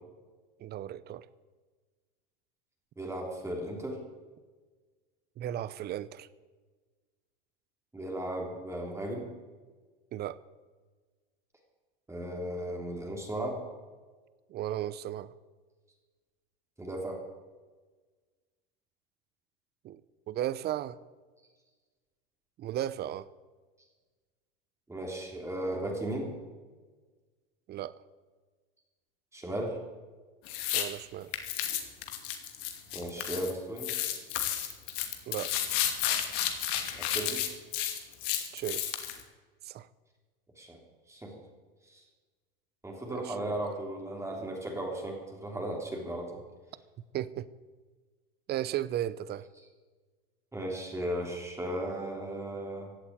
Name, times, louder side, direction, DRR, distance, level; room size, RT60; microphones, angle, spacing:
voice 1, 0.6-1.3 5.4-6.3 10.1-10.4 14.5-15.3 19.8-20.0 20.3-21.0 22.6-23.3 27.7-28.0 30.7-31.4 35.3-35.5 38.5-38.9 39.6-39.9 43.1-43.6 47.1-47.5 48.5-49.5, right 12 dB, 35° right, 0.8 m, -35 dB
voice 2, 3.0-4.0 7.9-9.3 12.1-13.6 16.8-17.2 24.9-26.3 29.3-29.8 32.9-33.9 36.9-37.4 40.6-40.8 41.1-41.4 41.8-42.0 42.8-46.4 49.6-49.7 50.5-52.9, right 1 dB, 10° right, 3.4 m, -36 dB
sound 1, 30.5-30.9 31.3-33.5 33.8-39.2, left 11 dB, 55° left, 2.5 m, -32 dB
16.0 x 8.5 x 9.5 m
hypercardioid pair, 100°, 29 cm